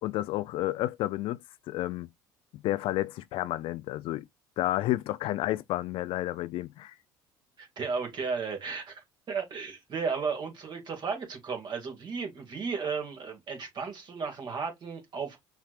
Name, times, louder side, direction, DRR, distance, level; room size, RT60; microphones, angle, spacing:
voice 1, 0.0-1.4 1.7-2.1 2.5-4.3 4.6-6.9, left 16 dB, 60° left, 0.4 m, -31 dB
voice 2, 7.6-15.4, right 5 dB, 45° right, 2.1 m, -34 dB
5.8 x 3.2 x 2.4 m
hypercardioid pair, 70°, 11 cm